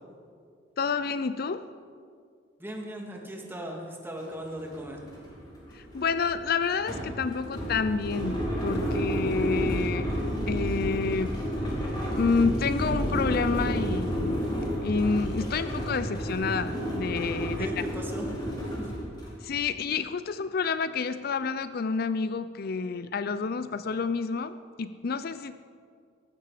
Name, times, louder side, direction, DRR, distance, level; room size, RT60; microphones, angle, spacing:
voice 1, 0.8-1.7 5.7-10.2 10.5-11.4 12.2-14.4 14.8-17.7 19.4-25.6, left 5 dB, 55° left, 12 dB, 0.5 m, -29 dB
voice 2, 2.6-5.1 17.4-18.3 18.8-18.9, right 1 dB, 10° right, 0 dB, 2.4 m, -38 dB
sound 1, 4.2-4.3 4.6-19.4, equal, 25° left, 4.9 m, -31 dB
18.5 x 15.0 x 5.0 m, 2.2 s
head